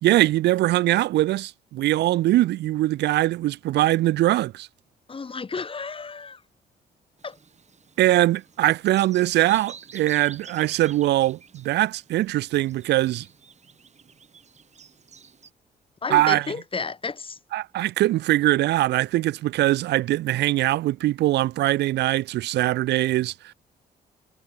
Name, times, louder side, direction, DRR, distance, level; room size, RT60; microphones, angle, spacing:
voice 1, 0.0-4.7 8.0-13.3 16.1-16.5 17.5-23.5, right 15 dB, 80° right, 0.6 m, -22 dB
voice 2, 5.1-6.4 7.2-7.4 16.0-17.4, left 4 dB, 30° left, 3.3 m, -32 dB
Bird vocalization bird call bird song, 7.2-15.5, right 6 dB, 40° right, 6.4 m, -49 dB
cardioid pair, 90°, 17 cm